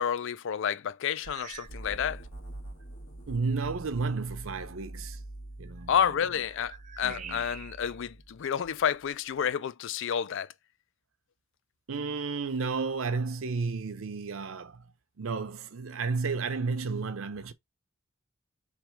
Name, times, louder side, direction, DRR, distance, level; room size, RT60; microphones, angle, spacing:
voice 1, 0.0-2.2 5.9-10.5, left 8 dB, 65° left, 0.4 m, -30 dB
sound 1, 1.2-1.9 2.2-2.5 3.2-3.3 5.7-8.0 8.5-9.6, right 7 dB, 35° right, 0.5 m, -48 dB
sound 2, 1.7-8.5, right 1 dB, 85° left, 1.6 m, -45 dB
voice 2, 3.3-5.2 5.6-5.9 7.0-7.4 11.9-14.9 15.2-17.5, right 4 dB, 80° right, 0.6 m, -32 dB
3.5 x 3.4 x 4.4 m
head